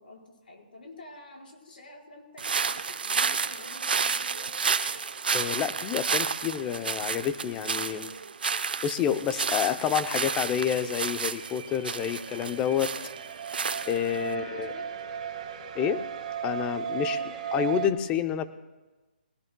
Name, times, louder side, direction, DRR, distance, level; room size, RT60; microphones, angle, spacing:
voice 1, 0.0-4.9 14.3-14.9 17.0-17.4, left 2 dB, 70° left, -1 dB, 5.0 m, -48 dB
sound 1, 2.4-14.3, right 5 dB, 70° right, 0.8 m, -31 dB
voice 2, 5.3-8.1 8.8-12.9 13.9-14.7 15.7-16.0 16.4-17.2 17.5-18.5, left 9 dB, 15° left, 10 dB, 0.6 m, -28 dB
sound 2, 10.8-17.9, right 7 dB, 45° right, 1.9 m, -36 dB
22.0 x 18.5 x 2.3 m, 1.2 s
hypercardioid pair, 155°, 5 cm